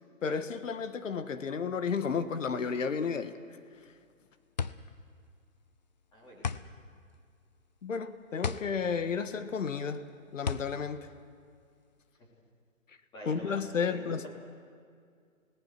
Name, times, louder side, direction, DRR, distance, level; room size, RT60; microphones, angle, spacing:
voice 1, 0.2-3.4 7.8-10.0 10.3-11.1 13.3-14.3, left 6 dB, 65° left, 10 dB, 1.5 m, -32 dB
sound 1, 3.8-12.1, left 6 dB, 35° left, 0.5 m, -38 dB
voice 2, 6.1-6.7 13.1-14.3, equal, 10° left, -4 dB, 3.7 m, -47 dB
30.0 x 18.0 x 6.0 m, 2.2 s
hypercardioid pair, 160°, 42 cm